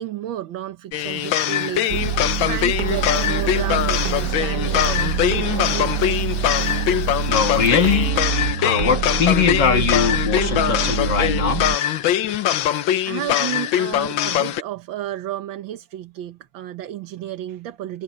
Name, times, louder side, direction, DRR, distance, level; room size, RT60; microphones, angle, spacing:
voice 1, 0.0-6.2 12.6-12.7 13.1-18.0, right 12 dB, 80° right, 1.7 m, -32 dB
sound 1, 0.9-14.6, left 11 dB, 80° left, 1.6 m, -22 dB
Fire, 1.0-8.1, right 2 dB, 20° right, 2.8 m, -40 dB
sound 2, 1.9-11.8, right 8 dB, 60° right, 1.2 m, -25 dB
voice 2, 7.3-8.1 8.6-11.6, left 7 dB, 65° left, 2.2 m, -21 dB
omnidirectional pair, 2.1 m